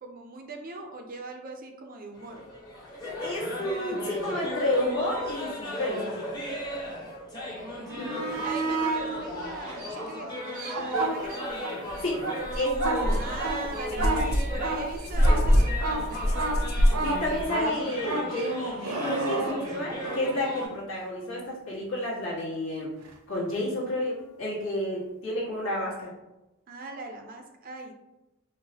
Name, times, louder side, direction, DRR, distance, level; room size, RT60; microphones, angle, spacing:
voice 1, 0.0-2.4 7.8-11.7 13.0-16.7 26.7-27.9, right 2 dB, 40° right, 3 dB, 0.4 m, -40 dB
sound 1, 2.2-20.7, left 1 dB, 20° left, 0.7 m, -36 dB
voice 2, 3.2-6.0 8.0-8.2 12.0-12.2 12.5-13.2 13.9-14.2 17.0-22.9 23.3-26.1, left 1 dB, 65° left, -5 dB, 1.3 m, -31 dB
sound 2, 7.8-9.1 9.7-11.7 12.1-20.3 23.0-23.1, right 3 dB, 85° right, 0.7 m, -31 dB
sound 3, 11.9-12.0 12.4-17.5, equal, 45° left, 0.4 m, -25 dB
4.6 x 2.1 x 2.8 m, 0.99 s
head